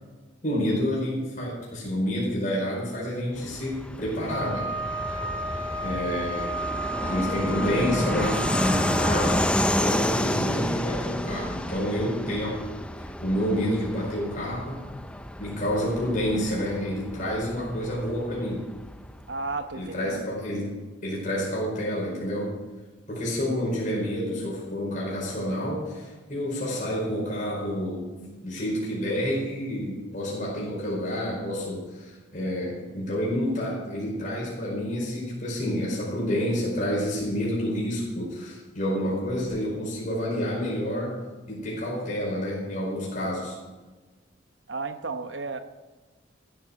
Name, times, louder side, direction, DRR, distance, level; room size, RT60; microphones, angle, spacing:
voice 1, 0.4-4.7 5.8-6.5 7.0-12.6 13.0-14.8 15.4-18.7 19.7-20.7 21.0-22.5 23.1-41.1 41.5-43.6, equal, 45° left, -5 dB, 4.9 m, -29 dB
Fixed-wing aircraft airplane, 3.4-19.5, left 1 dB, 5° left, 0.6 m, -30 dB
Wind instrument woodwind instrument, 4.3-9.4, right 1 dB, 15° right, 2.0 m, -33 dB
voice 2, 19.3-20.3 44.7-45.6, right 3 dB, 65° right, 9 dB, 1.0 m, -33 dB
15.0 x 9.0 x 6.4 m, 1.3 s
head